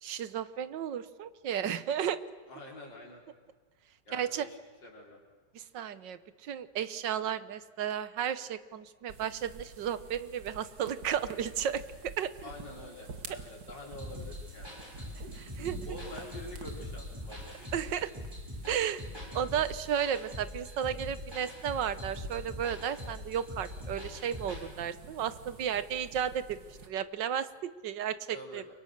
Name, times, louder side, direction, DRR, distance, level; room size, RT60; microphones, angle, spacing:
voice 1, 0.0-2.2 4.1-4.5 5.5-11.8 12.2-12.3 15.3-15.8 17.7-18.1 18.7-19.1 19.3-26.6 26.9-28.6, right 9 dB, 85° right, 14 dB, 1.7 m, -33 dB
voice 2, 2.5-3.2 4.1-5.2 12.4-15.1 15.9-17.9 28.3-28.6, left 1 dB, 90° left, -1 dB, 5.3 m, -47 dB
sound 1, 9.1-26.9, right 4 dB, 65° right, 2.4 m, -49 dB
sound 2, 14.0-24.6, left 1 dB, 15° right, 6.3 m, -43 dB
29.5 x 23.5 x 6.7 m, 1.3 s
omnidirectional pair, 1.9 m